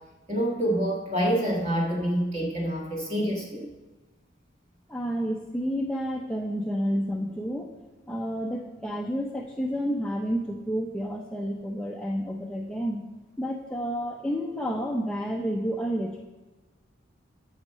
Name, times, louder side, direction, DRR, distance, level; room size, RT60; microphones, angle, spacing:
voice 1, 0.3-3.7, equal, 30° right, -2 dB, 1.5 m, -27 dB
voice 2, 4.9-7.7 8.1-13.0 13.4-16.2, equal, 5° left, -1 dB, 0.6 m, -30 dB
9.1 x 6.5 x 6.5 m, 1.2 s
head